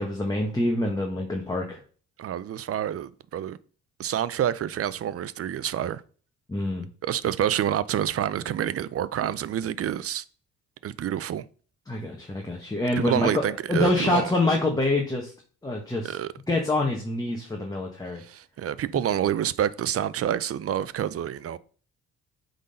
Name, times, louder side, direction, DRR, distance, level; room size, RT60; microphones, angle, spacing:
voice 1, 0.0-1.8 6.5-6.9 11.9-13.4 13.7-15.3 15.6-16.2 16.5-18.2, left 2 dB, 10° left, 1.5 m, -26 dB
voice 2, 2.2-3.6 4.0-6.0 7.0-10.2 10.8-11.4 13.0-14.3 16.0-16.3 18.2-21.6, right 10 dB, 50° right, 0.5 m, -28 dB
8.1 x 4.0 x 5.5 m
cardioid pair, 90°, 30 cm